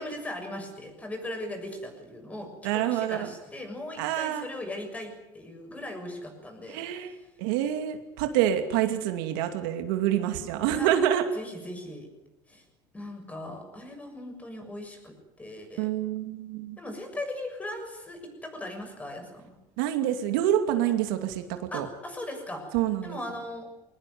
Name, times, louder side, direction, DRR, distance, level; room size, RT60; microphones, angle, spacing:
voice 1, 0.0-7.2 10.7-10.9 11.3-12.1 12.5-12.6 12.9-15.9 16.8-19.6 21.7-22.8 23.0-23.7, left 1 dB, 15° left, 5 dB, 6.5 m, -39 dB
voice 2, 2.6-3.3 4.0-4.5 6.7-11.2 15.8-16.8 19.8-21.4 21.7-21.9 22.7-23.2, right 11 dB, 80° right, 7 dB, 2.6 m, -27 dB
22.0 x 19.5 x 9.5 m, 0.97 s
supercardioid pair, 125°, 11 cm